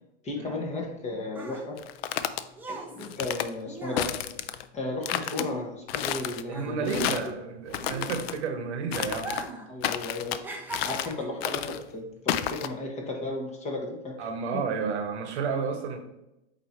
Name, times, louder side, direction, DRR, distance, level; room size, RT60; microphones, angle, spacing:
voice 1, 0.2-1.8 2.7-4.1 4.7-7.2 9.7-10.4 10.8-14.2, left 2 dB, 20° left, 1 dB, 1.1 m, -34 dB
sound 1, 0.8-6.2 6.5-8.6 9.1-9.7 10.0-11.5 12.2-12.4, right 2 dB, 5° right, 0.7 m, -40 dB
sound 2, 1.8-2.4 3.0-3.5 4.0-4.6 5.0-5.5 5.9-6.4 6.9-7.3 7.7-8.4 8.9-9.5 9.8-10.4 10.7-11.1 11.4-11.8 12.3-12.7, left 11 dB, 55° left, 0.5 m, -31 dB
voice 2, 6.5-9.4 14.2-16.0, right 5 dB, 65° right, 7 dB, 1.1 m, -31 dB
8.0 x 2.9 x 4.3 m, 0.91 s
hypercardioid pair, 125°, 36 cm